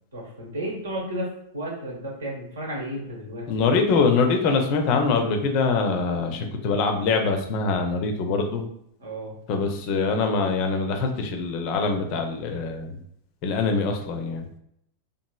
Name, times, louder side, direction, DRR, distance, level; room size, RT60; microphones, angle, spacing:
voice 1, 0.1-3.7 9.0-9.4, right 1 dB, 65° right, -2 dB, 1.0 m, -33 dB
voice 2, 3.5-8.7 9.5-13.0 13.4-14.5, left 4 dB, 45° left, 4 dB, 0.4 m, -24 dB
2.9 x 2.4 x 2.3 m, 0.74 s
figure-of-eight pair, 90°, 0 cm